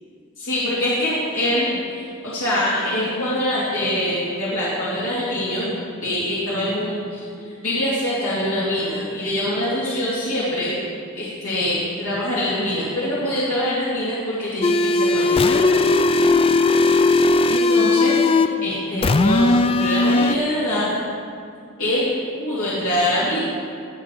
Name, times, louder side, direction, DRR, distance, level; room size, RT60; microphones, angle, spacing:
voice 1, 0.4-5.7 6.0-7.2 7.6-10.8 11.1-15.7 17.5-20.9 21.8-22.1 22.4-23.4, left 1 dB, 85° left, -9 dB, 3.0 m, -24 dB
sound 1, 14.6-18.6 19.0-20.4, left 3 dB, 25° left, 0.3 m, -17 dB
19.5 x 7.4 x 5.1 m, 2.4 s
head